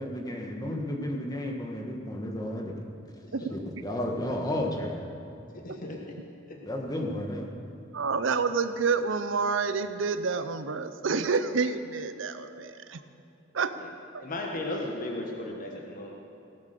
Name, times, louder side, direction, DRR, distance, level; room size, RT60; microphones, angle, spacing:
voice 1, 0.0-2.8 3.5-5.0 6.6-7.5, left 1 dB, 20° left, 1 dB, 1.4 m, -32 dB
voice 2, 3.2-3.6 5.5-6.1 6.5-6.6 13.8-13.9 14.2-16.1, left 1 dB, 45° left, 0 dB, 1.3 m, -36 dB
voice 3, 7.9-13.0 13.5-13.7 14.1-14.3, right 5 dB, 70° right, 11 dB, 0.6 m, -28 dB
17.5 x 8.6 x 6.8 m, 2.7 s
head